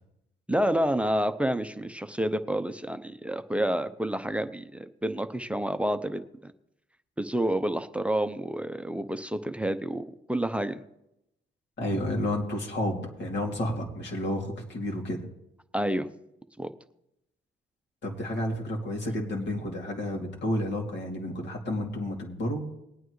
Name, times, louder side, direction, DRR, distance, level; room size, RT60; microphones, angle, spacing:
voice 1, 0.5-6.5 7.2-10.8 15.7-16.1 16.6-16.7, right 1 dB, 5° right, 9 dB, 0.6 m, -29 dB
voice 2, 11.8-15.2 18.0-22.6, left 1 dB, 60° left, 0 dB, 2.8 m, -31 dB
20.5 x 9.0 x 3.2 m, 0.83 s
cardioid pair, 90°, 20 cm